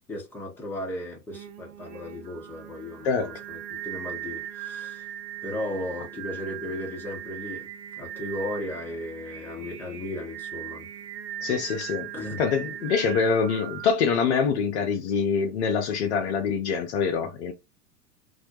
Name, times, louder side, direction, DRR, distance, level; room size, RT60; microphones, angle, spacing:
voice 1, 0.1-5.1 5.4-7.7 8.0-10.9 12.1-12.4, left 1 dB, 5° left, 0.8 m, -36 dB
Singing, 1.3-13.9, right 11 dB, 50° right, 0.6 m, -39 dB
voice 2, 11.4-12.1 12.4-17.5, left 6 dB, 45° left, 0.5 m, -25 dB
2.2 x 2.0 x 2.8 m
figure-of-eight pair, 100°, 48 cm